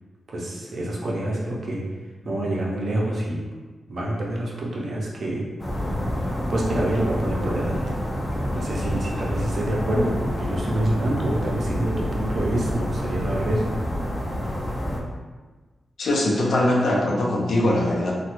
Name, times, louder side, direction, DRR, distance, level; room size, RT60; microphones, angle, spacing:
voice 1, 0.3-1.8 2.2-3.4 3.9-5.5 6.5-8.0 8.5-13.7, right 1 dB, 50° right, -3 dB, 0.6 m, -26 dB
sound 1, 5.6-15.0, equal, 10° left, 0.5 m, -28 dB
voice 2, 16.0-18.1, left 1 dB, 70° left, -3 dB, 0.6 m, -21 dB
3.1 x 2.2 x 3.0 m, 1.3 s
wide cardioid pair, 140°, 0 cm